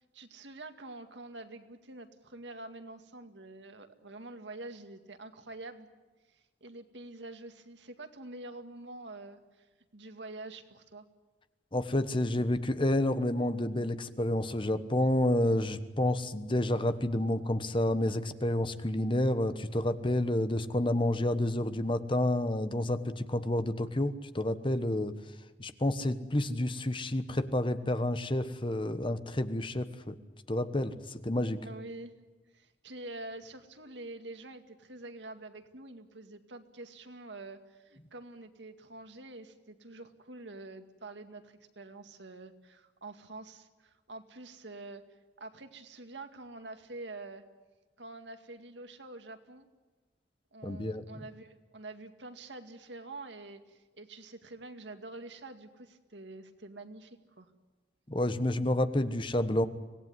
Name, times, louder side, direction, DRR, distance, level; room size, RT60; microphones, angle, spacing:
voice 1, 0.1-5.9 6.3-11.0 31.6-32.1 32.5-45.0 45.4-47.5 48.0-49.7 50.5-57.5, right 2 dB, 85° right, 7 dB, 2.2 m, -46 dB
voice 2, 11.7-25.1 25.6-30.1 30.5-31.6 50.6-51.0 58.1-59.7, left 1 dB, 30° left, 11 dB, 1.2 m, -29 dB
25.5 x 18.0 x 9.7 m, 1.2 s
head